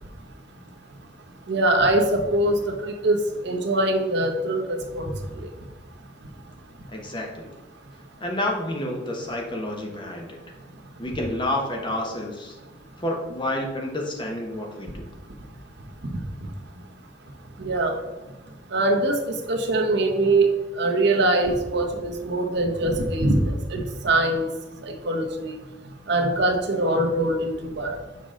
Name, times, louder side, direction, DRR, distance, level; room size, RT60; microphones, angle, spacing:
voice 1, 1.5-3.2 3.4-5.1 17.6-17.9 18.7-20.5 20.8-24.5 24.8-25.5 26.1-28.0, right 2 dB, 65° right, 4 dB, 0.9 m, -23 dB
voice 2, 6.9-7.5 8.2-10.4 11.0-12.5 13.0-15.1, left 1 dB, 25° left, 1 dB, 1.1 m, -29 dB
6.8 x 5.1 x 3.7 m, 1.1 s
head